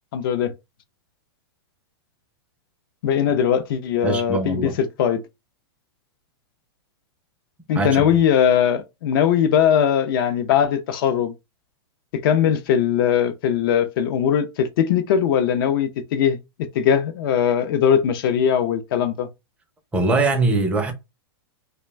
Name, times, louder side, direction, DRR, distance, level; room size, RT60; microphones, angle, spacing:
voice 1, 0.1-0.5 3.0-5.2 7.7-11.3 12.1-16.4 16.7-19.3, left 8 dB, 55° left, 0.5 m, -20 dB
voice 2, 4.0-4.7 7.7-8.1 19.9-20.9, right 3 dB, 10° right, 0.5 m, -21 dB
2.4 x 2.2 x 3.1 m
hypercardioid pair, 145°, 14 cm